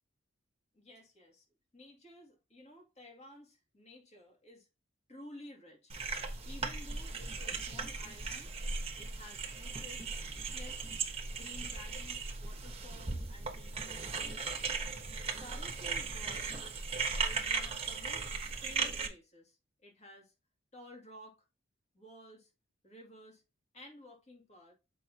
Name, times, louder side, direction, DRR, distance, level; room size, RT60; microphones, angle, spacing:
voice 1, 0.7-1.4 1.7-4.7 5.1-5.9 6.4-8.5 9.0-10.1 10.5-10.9 11.3-14.2 15.4-16.6 17.2-19.6 19.8-20.3 20.7-21.4 21.9-22.5 22.8-23.4 23.7-24.7, left 1 dB, 35° left, 2.3 m, -54 dB
sound 1, 5.9-19.1, right 4 dB, 30° right, 1.1 m, -37 dB
7.4 x 5.3 x 2.8 m
head